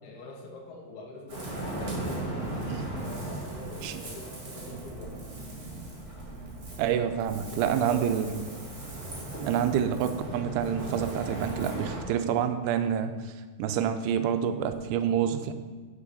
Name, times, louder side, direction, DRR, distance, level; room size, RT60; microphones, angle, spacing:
voice 1, 0.0-5.2 7.7-8.7 12.9-13.1, left 2 dB, 80° left, 0 dB, 3.2 m, -44 dB
Ocean, 1.3-12.0, right 2 dB, 40° right, 1.4 m, -37 dB
voice 2, 6.8-8.4 9.4-13.3 13.6-15.5, right 9 dB, 90° right, 10 dB, 2.6 m, -28 dB
10.5 x 5.2 x 4.2 m, 1.4 s
omnidirectional pair, 4.6 m